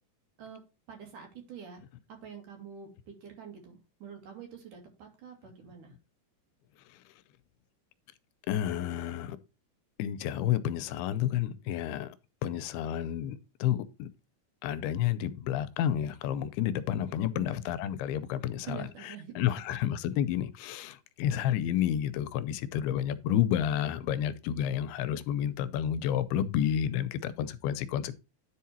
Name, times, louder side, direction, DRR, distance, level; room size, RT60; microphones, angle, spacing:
voice 1, 0.9-1.8 2.1-6.0 17.1-17.5 18.7-19.8, right 8 dB, 55° right, 3.5 m, -46 dB
voice 2, 8.5-9.4 10.0-12.2 12.4-14.1 14.6-18.8 19.4-28.1, left 10 dB, 90° left, 2.6 m, -30 dB
10.0 x 4.7 x 4.3 m
omnidirectional pair, 4.5 m